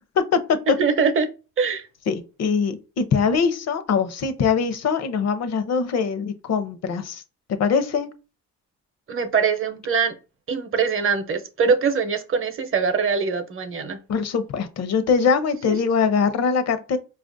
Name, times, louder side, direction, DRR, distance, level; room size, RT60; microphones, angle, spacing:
voice 1, 0.8-1.3 1.6-1.8 9.1-10.1 10.5-14.0 15.7-15.8, right 5 dB, 45° right, 0.7 m, -22 dB
voice 2, 2.1-7.2 7.5-8.1 14.1-17.0, left 5 dB, 60° left, 0.7 m, -22 dB
4.7 x 2.4 x 2.6 m
cardioid pair, 90°, 30 cm